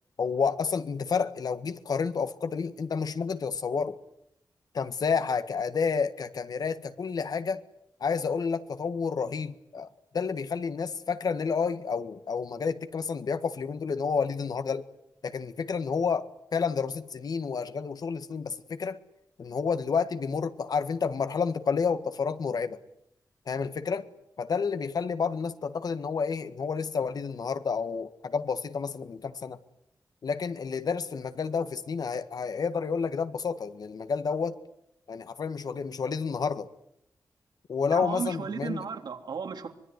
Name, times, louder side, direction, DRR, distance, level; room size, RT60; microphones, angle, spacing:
voice 1, 0.2-4.0 4.7-7.6 8.0-9.9 10.1-14.9 15.2-19.0 19.4-22.8 23.5-24.1 24.4-29.6 30.2-34.6 35.1-36.7 37.7-38.8, left 5 dB, 65° left, 1.7 m, -30 dB
voice 2, 37.9-39.7, right 6 dB, 80° right, 3.4 m, -34 dB
25.0 x 22.0 x 9.6 m
wide cardioid pair, 120°, 7 cm